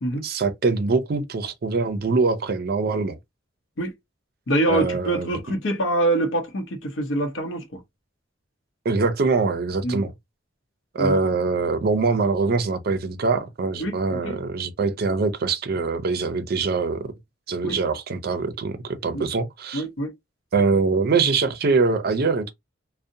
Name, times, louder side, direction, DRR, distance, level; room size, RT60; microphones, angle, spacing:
voice 1, 0.2-3.1 4.7-5.4 8.8-10.1 10.9-17.1 17.5-19.8 20.5-22.5, right 4 dB, 50° right, 0.4 m, -23 dB
voice 2, 4.5-7.8 9.8-10.0 11.0-11.2 13.8-14.4 17.6-17.8 19.1-19.3 19.7-20.1, right 1 dB, 70° left, 0.7 m, -25 dB
2.6 x 2.0 x 2.6 m
head